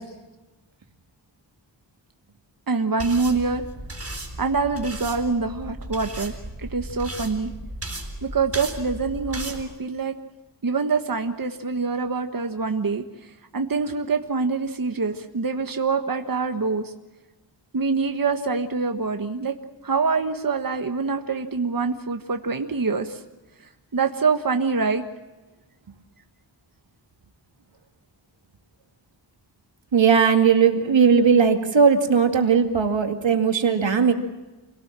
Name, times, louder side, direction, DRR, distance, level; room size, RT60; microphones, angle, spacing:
voice 1, 2.7-3.6 4.4-7.5 8.2-10.1 10.6-16.9 17.7-19.6 19.8-23.2 23.9-25.0, right 4 dB, 50° right, 6 dB, 1.4 m, -25 dB
sound 1, 3.0-9.6, right 1 dB, 30° right, 5.5 m, -35 dB
voice 2, 29.9-34.1, right 6 dB, 90° right, 5 dB, 2.3 m, -18 dB
28.0 x 18.0 x 7.5 m, 1.2 s
wide cardioid pair, 65°, 44 cm